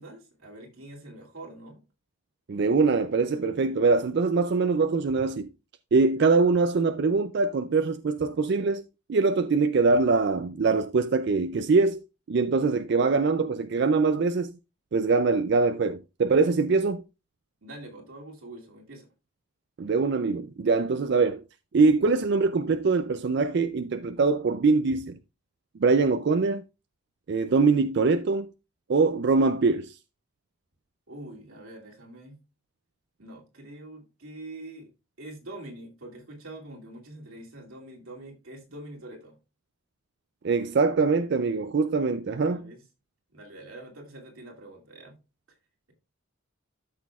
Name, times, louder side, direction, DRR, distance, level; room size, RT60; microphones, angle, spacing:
voice 1, 0.0-1.8 17.6-19.1 31.1-32.4 33.2-34.9 35.2-39.4 42.2-42.8 43.3-45.2, right 1 dB, 90° right, 2.5 m, -44 dB
voice 2, 2.5-5.5 5.9-8.8 9.1-12.0 12.3-14.5 14.9-17.0 19.8-21.4 21.7-25.2 25.8-26.6 27.3-28.5 28.9-30.0 40.4-42.6, right 4 dB, 55° right, 0.4 m, -23 dB
12.5 x 6.1 x 2.3 m
head